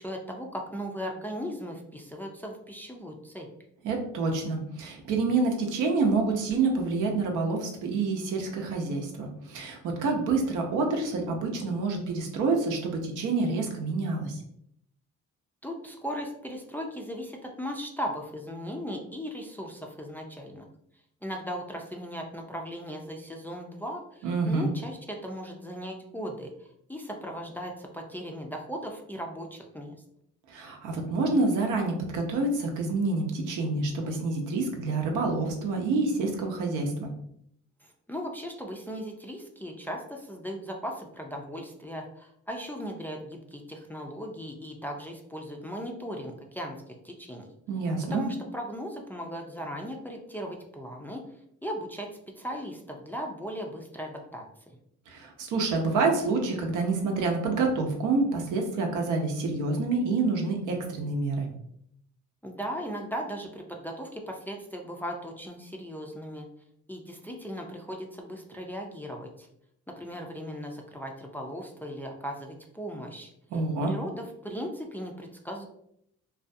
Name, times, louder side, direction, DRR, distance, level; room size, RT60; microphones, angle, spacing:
voice 1, 0.0-3.5 15.6-20.7 21.2-29.9 37.8-47.5 48.1-51.2 51.6-52.1 52.4-54.8 62.4-66.5 66.9-69.5 69.9-73.3 73.9-75.7, equal, 5° left, 1 dB, 0.3 m, -37 dB
voice 2, 3.8-14.4 24.2-24.7 30.5-37.1 47.7-48.2 55.1-61.5 73.5-73.9, right 3 dB, 80° right, 2 dB, 0.7 m, -27 dB
2.4 x 2.2 x 2.5 m, 0.73 s
cardioid pair, 90°, 30 cm